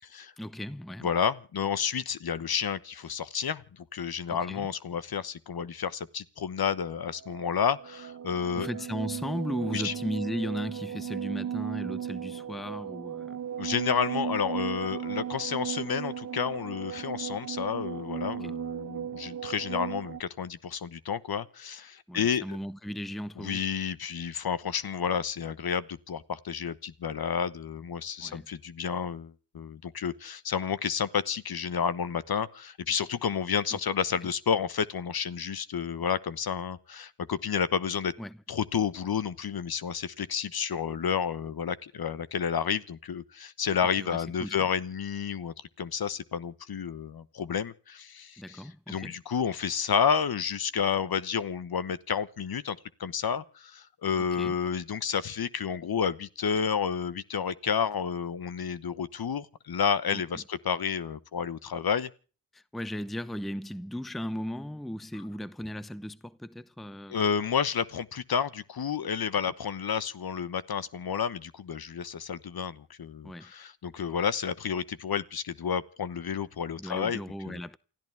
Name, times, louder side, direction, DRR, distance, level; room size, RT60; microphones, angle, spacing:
voice 1, 0.4-1.1 4.3-4.7 8.5-13.4 18.4-18.5 22.1-23.7 28.2-28.6 33.7-33.8 34.2-34.3 38.2-38.4 44.0-44.5 48.4-49.2 54.2-54.5 60.1-60.4 62.5-67.2 73.2-73.5 76.8-77.8, equal, ahead, 0.7 m, -36 dB
voice 2, 1.0-8.7 9.7-9.9 13.6-22.4 23.4-38.1 38.5-48.6 48.9-62.1 67.1-77.2 77.5-77.6, left 7 dB, 50° left, 1.1 m, -30 dB
sound 1, 6.8-20.2, right 9 dB, 40° right, 0.7 m, -36 dB
29.0 x 13.5 x 3.5 m
supercardioid pair, 40°, 46 cm